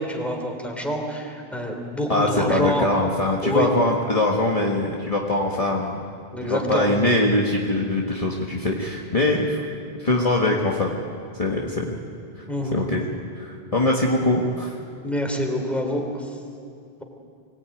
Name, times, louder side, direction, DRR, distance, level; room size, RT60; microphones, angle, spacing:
voice 1, 0.0-2.9 3.4-3.7 6.3-6.9 12.5-12.8 15.0-16.3, equal, ahead, 2 dB, 3.3 m, -26 dB
voice 2, 2.1-6.0 6.4-9.6 10.0-10.9 11.4-12.0 12.4-12.5 12.7-14.8, left 2 dB, 35° left, -2 dB, 1.7 m, -22 dB
24.5 x 18.0 x 9.2 m, 2.4 s
omnidirectional pair, 1.1 m